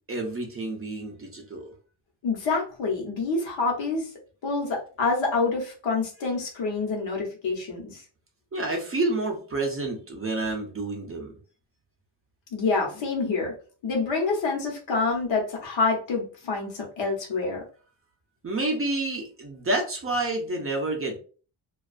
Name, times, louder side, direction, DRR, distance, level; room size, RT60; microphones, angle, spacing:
voice 1, 0.1-1.7 8.5-11.3 18.4-21.2, right 2 dB, 30° right, 1 dB, 0.4 m, -29 dB
voice 2, 2.2-4.1 4.4-8.0 12.5-13.5 13.8-17.6, left 4 dB, 75° left, 0 dB, 0.9 m, -27 dB
2.3 x 2.3 x 2.4 m, 0.39 s
wide cardioid pair, 160°, 46 cm